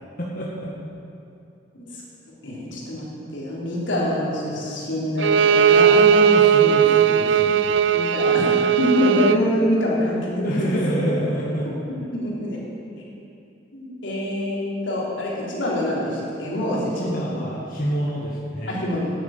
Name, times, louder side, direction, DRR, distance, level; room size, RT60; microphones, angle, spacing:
voice 1, 0.2-0.7 5.9-7.8 10.4-11.7 16.9-18.8, equal, 50° left, -5 dB, 1.8 m, -27 dB
voice 2, 2.4-5.9 7.9-10.5 12.1-12.6 13.7-17.0 18.7-19.1, left 1 dB, 85° left, -5 dB, 3.3 m, -25 dB
Bowed string instrument, 5.2-9.4, right 7 dB, 70° right, 0.4 m, -17 dB
9.6 x 9.3 x 8.9 m, 2.7 s
head